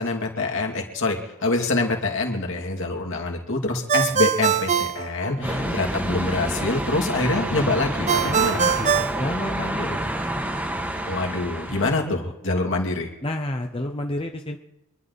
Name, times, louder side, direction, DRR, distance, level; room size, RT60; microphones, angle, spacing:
voice 1, 0.0-8.8 11.1-13.1, left 2 dB, 60° left, 1 dB, 2.7 m, -25 dB
Ringtone, 3.9-5.8 8.1-10.0, right 8 dB, 30° right, 0.7 m, -23 dB
voice 2, 5.3-5.7 8.2-10.1 11.8-12.2 13.2-14.6, left 1 dB, 25° left, 3 dB, 0.9 m, -30 dB
sound 1, 5.4-12.0, right 1 dB, 10° right, 1.4 m, -28 dB
26.0 x 11.5 x 4.1 m, 0.93 s
head